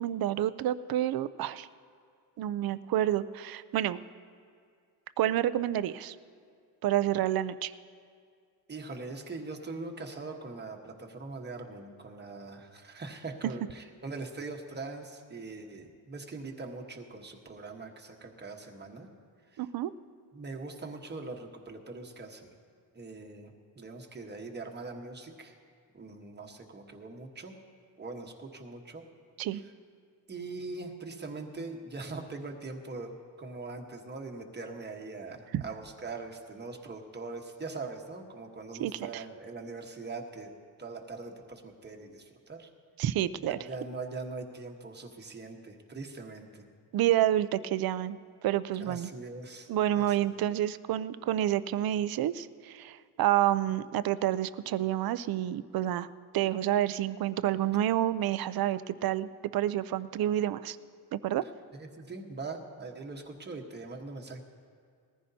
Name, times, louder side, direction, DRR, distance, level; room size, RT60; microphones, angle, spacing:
voice 1, 0.0-1.7 2.4-4.0 5.2-6.2 6.8-7.7 19.6-19.9 29.4-29.6 35.5-35.6 38.8-39.2 43.0-43.6 46.9-48.2 48.4-49.1 49.7-56.1 56.3-60.8 61.1-61.4, right 12 dB, 55° right, 15 dB, 0.5 m, -29 dB
voice 2, 8.7-19.1 19.5-19.6 20.3-22.5 22.9-25.5 25.9-27.5 28.0-29.1 29.5-29.6 30.3-40.5 40.8-42.7 43.4-46.7 48.8-49.7 49.9-50.3 61.7-64.4, right 3 dB, 25° right, 2 dB, 1.2 m, -42 dB
20.0 x 14.5 x 2.8 m, 2.2 s
cardioid pair, 115°, 43 cm